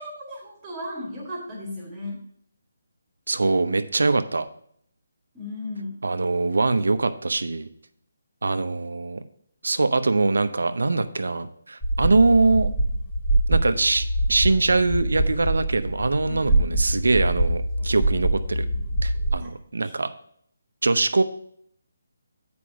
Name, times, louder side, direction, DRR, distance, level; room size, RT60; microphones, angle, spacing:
voice 1, 0.0-2.2 5.3-6.0 16.3-16.7 19.4-19.5 19.8-19.9, left 1 dB, 20° right, -3 dB, 1.9 m, -35 dB
voice 2, 3.3-4.5 6.0-7.7 8.4-9.2 9.6-12.7 13.5-18.6 19.0-20.1 20.8-21.2, right 3 dB, 80° right, 10 dB, 0.7 m, -23 dB
sound 1, 11.8-19.3, right 1 dB, 5° left, 1.6 m, -24 dB
8.4 x 5.2 x 4.7 m, 0.65 s
figure-of-eight pair, 160°, 0 cm